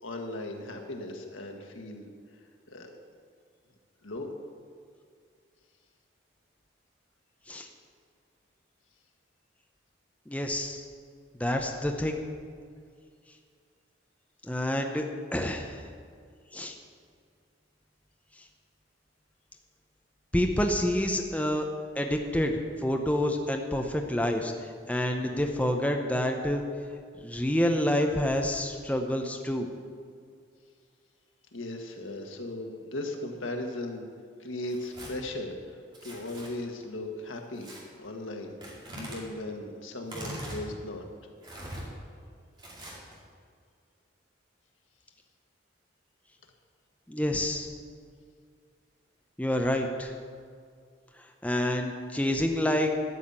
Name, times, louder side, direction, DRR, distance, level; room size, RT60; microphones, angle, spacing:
voice 1, 0.0-2.0 2.7-2.9 4.0-4.3 31.5-34.1 34.4-35.8 36.0-37.7 38.0-38.5 39.0-41.0, left 1 dB, 85° left, 3 dB, 1.5 m, -37 dB
voice 2, 10.3-10.8 11.4-12.2 14.5-15.0 15.3-15.8 16.5-16.7 20.3-21.7 22.0-26.6 27.2-29.7 47.1-47.7 49.4-50.1 51.4-53.0, left 1 dB, 5° left, 3 dB, 0.7 m, -28 dB
Tearing, 34.6-35.1 35.9-36.5 37.6-37.8 38.6-39.2 40.0-40.6 41.4-41.8 42.6-43.2, right 1 dB, 25° right, 2.3 m, -41 dB
12.5 x 5.7 x 8.7 m, 2.1 s
head